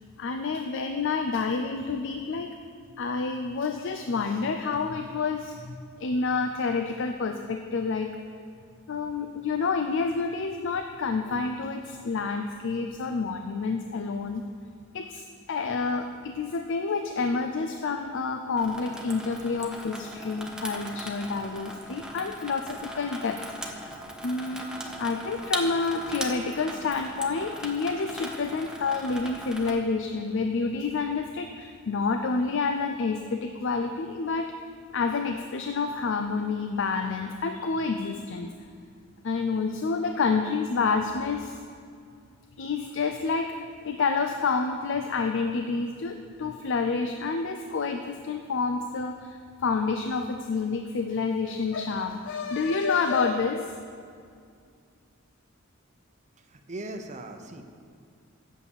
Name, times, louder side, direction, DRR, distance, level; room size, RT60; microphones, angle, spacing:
voice 1, 0.2-2.5 3.0-8.1 8.9-14.4 14.9-23.4 24.2-24.7 25.0-34.5 34.9-38.5 39.2-41.6 42.6-43.6 43.8-53.8, left 4 dB, 65° left, 6 dB, 0.5 m, -28 dB
Water tap faucet / Sink (filling or washing), 18.6-29.7, right 1 dB, 5° right, 0.8 m, -39 dB
voice 2, 56.7-57.6, right 2 dB, 35° right, 5 dB, 0.8 m, -38 dB
8.5 x 6.8 x 7.0 m, 2.3 s
head